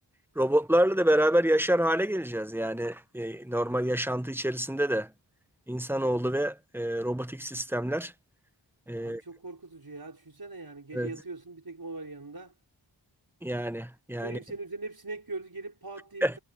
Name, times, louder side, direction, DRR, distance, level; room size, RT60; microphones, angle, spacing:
voice 1, 0.3-5.1 5.7-8.1 8.9-9.2 10.9-11.1 13.4-14.4 16.2-16.4, right 1 dB, 5° right, 1.3 m, -27 dB
voice 2, 9.0-12.5 14.2-16.4, right 3 dB, 50° right, 5.3 m, -41 dB
wide cardioid pair, 60°, 46 cm